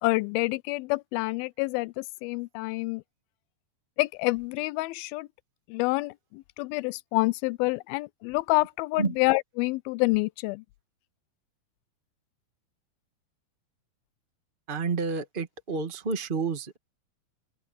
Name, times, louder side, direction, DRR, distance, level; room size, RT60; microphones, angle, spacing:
voice 1, 0.0-3.0 4.0-5.3 5.7-10.6, left 23 dB, 85° left, 2.4 m, -28 dB
voice 2, 14.7-16.8, right 4 dB, 40° right, 0.7 m, -30 dB
omnidirectional pair, 4.2 m